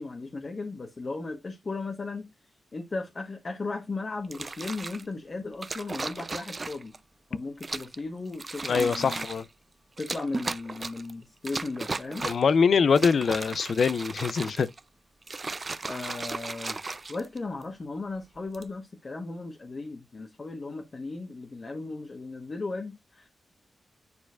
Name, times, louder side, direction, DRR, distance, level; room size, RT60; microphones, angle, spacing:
voice 1, 0.0-6.9 7.3-9.3 10.0-12.3 15.8-16.8 17.1-23.3, left 3 dB, 45° left, 1.3 m, -36 dB
sound 1, 4.2-5.0 5.6-7.0 7.6-8.0 8.3-9.5 10.0-11.1 11.5-12.5 12.9-14.8 15.2-17.6 18.4-18.7, right 3 dB, 40° right, 0.5 m, -36 dB
voice 2, 8.6-9.4 12.2-14.7, left 5 dB, 65° left, 0.4 m, -23 dB
9.6 x 4.4 x 2.5 m
cardioid pair, 60°, 0 cm